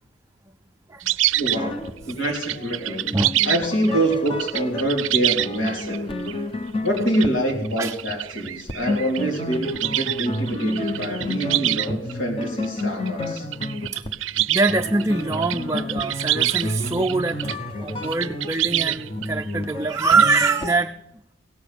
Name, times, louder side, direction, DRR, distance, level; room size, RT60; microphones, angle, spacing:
sound 1, 1.0-6.3 6.9-12.1 12.4-17.5 17.9-20.5, right 14 dB, 80° right, 0.5 m, -26 dB
voice 1, 1.3-1.8 2.1-3.1 3.4-6.1 6.8-13.5, right 1 dB, 85° left, 1 dB, 3.9 m, -25 dB
sound 2, 1.5-20.7, left 1 dB, 30° left, 1.1 m, -31 dB
voice 2, 14.5-17.5 17.8-20.9, right 3 dB, 15° right, 5 dB, 0.4 m, -23 dB
17.0 x 7.3 x 8.6 m, 0.82 s
head